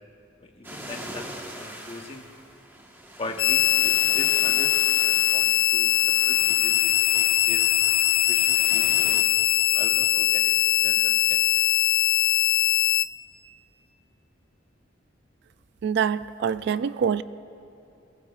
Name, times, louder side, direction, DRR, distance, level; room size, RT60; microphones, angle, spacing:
voice 1, 0.4-1.3 1.5-2.3 3.2-3.6 4.1-7.7 8.3-9.2 9.7-11.5, left 2 dB, 30° left, 3 dB, 1.0 m, -40 dB
sound 1, 0.6-9.2, right 1 dB, 10° right, 1.3 m, -42 dB
sound 2, 3.4-13.1, left 14 dB, 75° left, 0.5 m, -21 dB
voice 2, 15.8-17.2, right 7 dB, 60° right, 16 dB, 0.3 m, -25 dB
22.5 x 21.0 x 2.4 m, 2.8 s
head